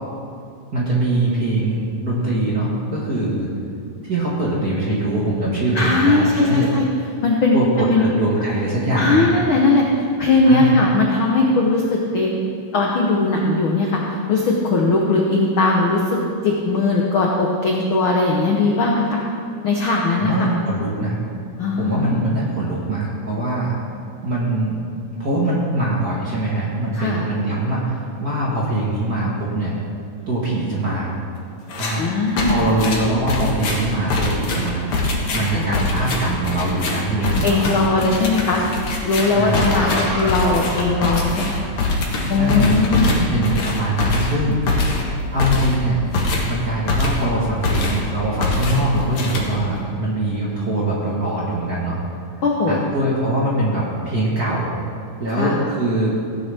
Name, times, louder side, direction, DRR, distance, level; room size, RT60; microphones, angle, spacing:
voice 1, 0.7-3.5 4.0-6.7 7.5-9.3 10.4-10.7 20.2-21.2 21.8-23.7 24.2-24.8 25.2-29.8 30.3-31.1 31.8-35.0 35.3-37.8 39.3-39.7 42.4-44.6 45.3-46.0 46.5-52.0 52.7-54.7 55.2-56.2, right 1 dB, 45° right, -5 dB, 1.4 m, -22 dB
voice 2, 5.7-6.9 7.2-7.6 7.9-8.0 8.9-12.4 12.7-19.2 19.6-20.5 21.6-22.3 26.9-27.2 32.0-32.7 35.5-35.6 37.4-38.6 39.0-41.6 42.3-43.2 52.4-52.8 55.3-55.6, left 3 dB, 75° left, -1 dB, 1.1 m, -19 dB
sound 1, 31.7-32.0 32.4-47.3 47.6-48.1 48.4-49.8, left 2 dB, 50° left, 2.0 m, -23 dB
Zipper (clothing), 37.7-41.8 42.3-42.5, equal, 30° left, 1.4 m, -31 dB
16.5 x 9.7 x 3.5 m, 2.5 s
omnidirectional pair, 3.8 m